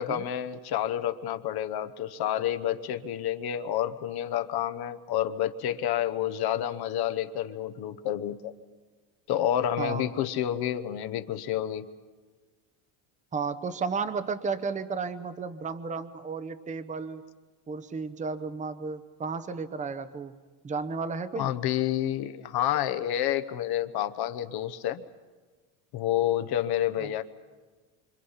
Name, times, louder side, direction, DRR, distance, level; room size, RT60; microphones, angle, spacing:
voice 1, 0.0-8.5 9.3-11.9 21.4-25.0 25.9-27.2, left 11 dB, 50° left, 9 dB, 1.0 m, -29 dB
voice 2, 9.8-10.1 13.3-17.2 17.7-20.4 20.6-21.5 27.0-27.1, right 5 dB, 15° right, 12 dB, 0.8 m, -33 dB
27.5 x 26.0 x 5.7 m, 1.4 s
cardioid pair, 145°, 50 cm